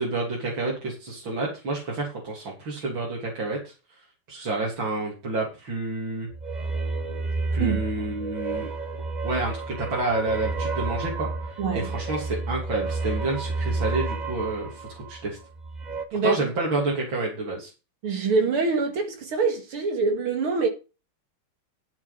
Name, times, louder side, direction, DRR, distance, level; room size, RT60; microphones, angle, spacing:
voice 1, 0.0-3.7 4.3-6.3 7.5-8.7 9.2-15.4 16.2-17.7, right 2 dB, 60° right, 3.9 m, -29 dB
sound 1, 6.3-16.1, right 3 dB, 30° right, 0.9 m, -30 dB
voice 2, 11.6-11.9 16.1-16.4 18.0-20.7, right 4 dB, 80° right, 2.8 m, -24 dB
12.0 x 7.4 x 5.8 m
omnidirectional pair, 2.4 m